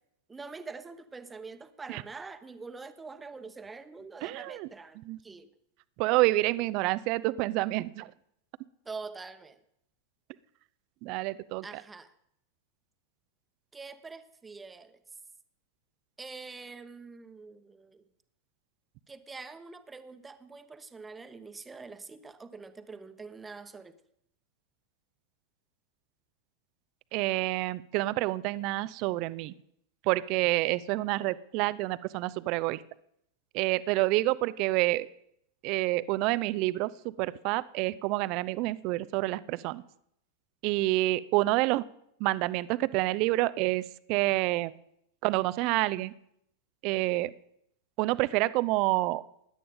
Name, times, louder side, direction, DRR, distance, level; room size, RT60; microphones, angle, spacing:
voice 1, 0.3-5.5 8.8-9.6 11.6-12.1 13.7-15.0 16.2-18.0 19.1-23.9, right 4 dB, 15° right, 10 dB, 1.0 m, -45 dB
voice 2, 4.2-4.7 5.1-5.2 6.0-8.1 11.0-11.6 27.1-29.5 30.1-32.8 33.5-35.1 35.6-39.8 40.6-41.8 42.2-44.7 45.2-46.1 46.8-47.3 48.0-49.2, right 19 dB, 45° right, 18 dB, 0.5 m, -28 dB
20.0 x 10.5 x 3.7 m, 0.74 s
figure-of-eight pair, 90°, 0 cm